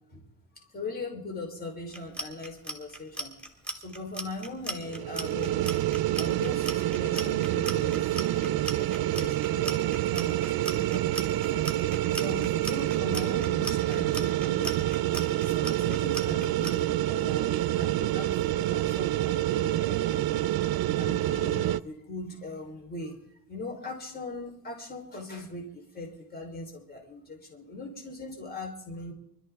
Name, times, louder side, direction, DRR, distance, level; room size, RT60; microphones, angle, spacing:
voice 1, 0.5-3.4 3.8-5.8 6.2-8.2 8.4-11.8 12.1-14.8 15.4-20.3 20.7-29.1, left 2 dB, 25° left, 1 dB, 3.6 m, -40 dB
Clock, 1.9-16.7, right 1 dB, 5° left, 2.6 m, -37 dB
sound 1, 4.8-21.8, right 14 dB, 75° right, 0.5 m, -27 dB
25.5 x 13.0 x 3.5 m, 0.73 s
cardioid pair, 115°, 36 cm